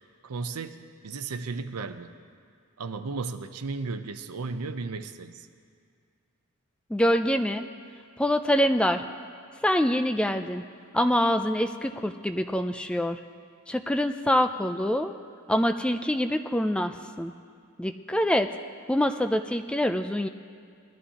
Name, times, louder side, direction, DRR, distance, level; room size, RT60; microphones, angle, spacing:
voice 1, 0.2-2.1 2.8-5.5, right 4 dB, 85° right, 10 dB, 0.6 m, -35 dB
voice 2, 6.9-7.7 8.2-9.0 9.6-10.6 10.9-13.2 13.7-15.1 15.5-16.9 17.2-17.3 17.8-18.5 18.9-20.3, equal, 5° left, 7 dB, 0.3 m, -25 dB
19.5 x 13.0 x 2.9 m, 2.2 s
head